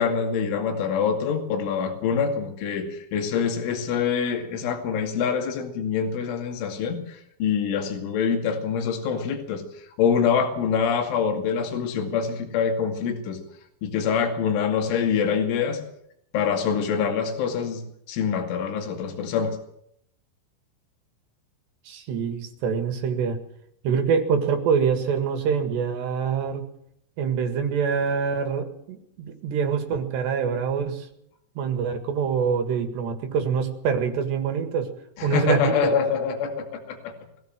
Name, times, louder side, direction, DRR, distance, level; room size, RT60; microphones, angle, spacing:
voice 1, 0.0-13.4 13.8-15.8 16.3-17.8 18.1-19.6 35.2-37.1, left 6 dB, 75° left, 4 dB, 4.7 m, -25 dB
voice 2, 21.9-23.4 23.8-26.6 27.2-31.1 31.6-34.9 35.2-35.9, right 6 dB, 65° right, 6 dB, 3.8 m, -25 dB
22.0 x 16.0 x 7.6 m, 0.73 s
omnidirectional pair, 5.7 m